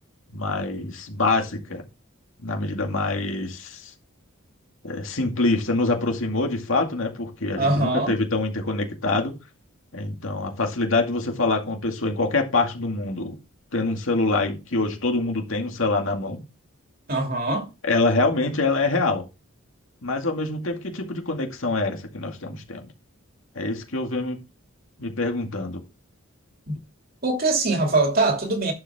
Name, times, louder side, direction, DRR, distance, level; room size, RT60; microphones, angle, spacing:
voice 1, 0.3-1.8 2.4-3.9 4.8-9.4 9.9-13.4 13.7-16.4 17.8-19.2 20.0-22.8 23.6-24.4 25.0-25.8, left 2 dB, 65° left, 2.3 m, -25 dB
voice 2, 7.6-8.1 17.1-17.7 27.2-28.7, right 2 dB, 45° right, 2.8 m, -22 dB
11.0 x 7.4 x 3.6 m
head